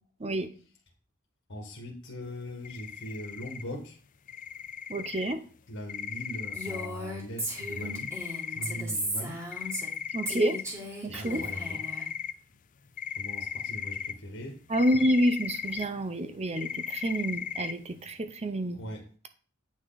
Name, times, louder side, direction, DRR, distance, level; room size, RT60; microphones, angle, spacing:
voice 1, 1.5-4.0 5.7-8.1 8.5-9.4 11.0-11.8 13.2-14.6 18.7-19.1, equal, 60° left, 1.7 m, -40 dB
sound 1, 2.6-3.6 4.3-5.3 5.9-6.9 7.6-8.8 9.5-10.6 11.2-12.3 13.0-14.1 14.7-15.8 16.2-16.3 16.6-17.7, left 8 dB, 40° left, 0.4 m, -36 dB
voice 2, 4.9-5.4 10.1-10.6 11.0-11.4 14.7-18.8, right 1 dB, 30° right, 0.6 m, -28 dB
Female speech woman speaking, 6.5-10.0 10.3-12.0, right 1 dB, 15° right, 2.4 m, -36 dB
9.2 x 6.2 x 4.0 m
head